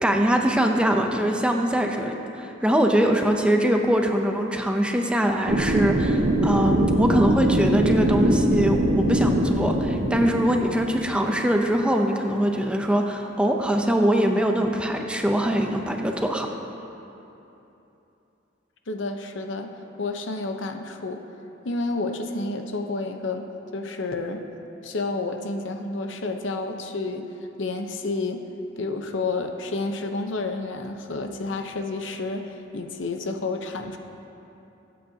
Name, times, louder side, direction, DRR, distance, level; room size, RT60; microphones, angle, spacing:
voice 1, 0.0-16.5, right 1 dB, 5° right, 2 dB, 0.6 m, -23 dB
sound 1, 5.5-11.4, right 1 dB, 80° right, 1.1 m, -22 dB
voice 2, 18.9-21.2 21.6-24.4 24.8-27.3 27.6-28.4 28.8-34.0, left 3 dB, 70° left, 5 dB, 0.8 m, -30 dB
22.0 x 8.6 x 2.8 m, 2.9 s
head